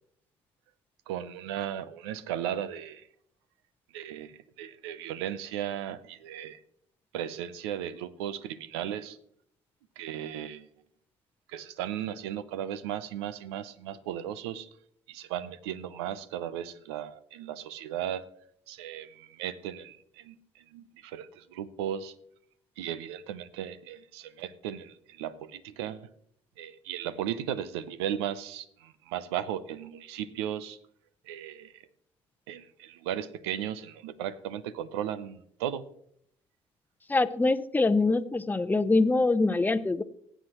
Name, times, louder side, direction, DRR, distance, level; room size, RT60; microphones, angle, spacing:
voice 1, 1.1-3.0 3.9-6.6 7.1-9.2 10.0-10.7 11.5-14.7 15.1-18.3 18.7-22.1 22.8-26.1 26.6-30.8 31.3-31.8 32.5-35.8, right 10 dB, 90° right, 0.6 m, -36 dB
voice 2, 37.1-40.0, left 3 dB, 15° left, 0.7 m, -24 dB
19.0 x 8.0 x 3.0 m
hypercardioid pair, 65°, 13 cm